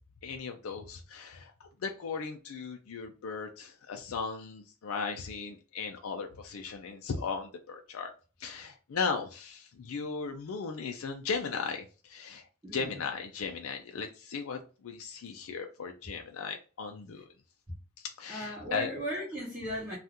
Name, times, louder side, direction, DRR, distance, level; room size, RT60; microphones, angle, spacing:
voice 1, 0.2-8.1 8.4-12.5 12.7-17.2 18.0-18.9, left 5 dB, 70° left, 0.4 m, -37 dB
voice 2, 12.6-12.9 18.3-20.0, equal, 15° right, 1.0 m, -36 dB
2.7 x 2.4 x 3.5 m
head